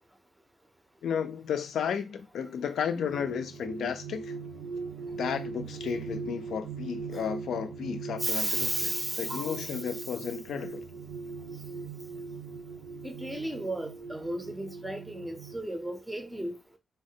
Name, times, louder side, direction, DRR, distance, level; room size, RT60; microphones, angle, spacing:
voice 1, 1.0-4.3 5.2-10.8, left 7 dB, 80° left, 0.4 m, -33 dB
sound 1, 2.8-15.6, right 5 dB, 75° right, 0.6 m, -40 dB
voice 2, 8.2-10.0 13.0-16.6, right 1 dB, 5° right, 0.5 m, -34 dB
3.2 x 2.2 x 2.7 m
wide cardioid pair, 150°, 0 cm